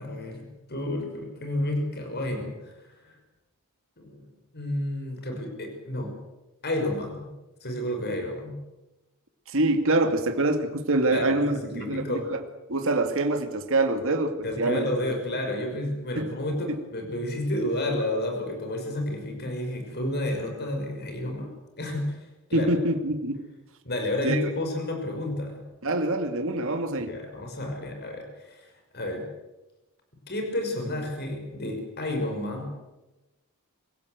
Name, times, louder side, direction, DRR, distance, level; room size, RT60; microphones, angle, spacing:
voice 1, 0.0-2.5 3.0-3.2 4.0-4.2 4.5-6.2 6.6-7.3 7.6-8.6 11.0-12.3 14.4-21.5 21.8-22.2 22.5-22.7 23.8-25.6 27.1-28.7 28.9-29.2 30.3-32.7, left 1 dB, 50° left, 3 dB, 5.9 m, -31 dB
voice 2, 9.5-12.4 12.7-15.1 16.2-16.4 22.5-23.4 24.2-24.4 25.8-27.1, right 2 dB, 65° right, 6 dB, 2.2 m, -25 dB
26.0 x 16.5 x 8.0 m, 1.0 s
head